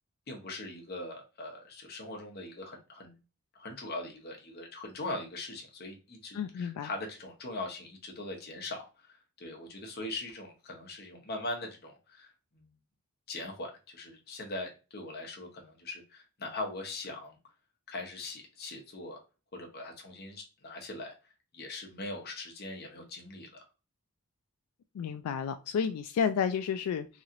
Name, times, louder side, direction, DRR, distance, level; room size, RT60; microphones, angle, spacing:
voice 1, 0.3-3.2 3.5-12.7 13.3-17.4 17.9-19.2 19.5-21.1 21.5-23.6, left 2 dB, 45° left, 1 dB, 0.9 m, -41 dB
voice 2, 6.3-6.9 24.9-27.1, left 7 dB, 85° left, 11 dB, 0.3 m, -31 dB
3.0 x 2.8 x 2.5 m, 0.32 s
head